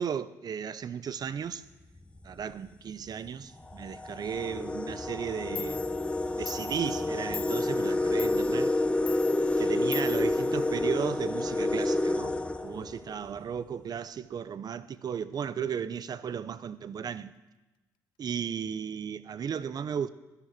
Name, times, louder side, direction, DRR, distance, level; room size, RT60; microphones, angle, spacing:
voice 1, 0.0-1.6 2.2-6.0 6.4-8.7 9.6-12.3 12.6-17.3 18.2-20.1, right 7 dB, 50° right, 0.7 m, -35 dB
sound 1, 2.0-2.2 3.1-3.2 3.6-13.4, left 2 dB, 15° left, 1.1 m, -29 dB
Clock, 5.2-5.3 5.6-11.2, left 10 dB, 70° left, 0.6 m, -44 dB
16.5 x 11.0 x 6.1 m
supercardioid pair, 65°, 8 cm